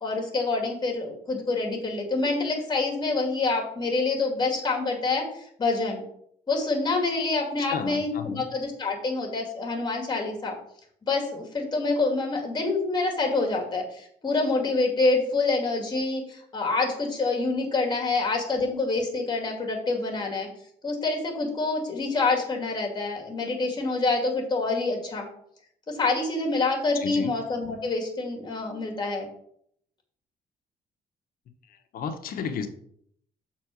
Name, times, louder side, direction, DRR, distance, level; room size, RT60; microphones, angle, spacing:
voice 1, 0.0-6.0 6.5-10.6 11.0-20.5 20.8-25.3 25.9-29.3, left 3 dB, 30° left, 0 dB, 2.2 m, -26 dB
voice 2, 7.6-8.5 26.9-27.3 31.7-32.7, left 7 dB, 70° left, 7 dB, 1.0 m, -33 dB
6.8 x 4.3 x 6.2 m, 0.69 s
cardioid pair, 120°, 15 cm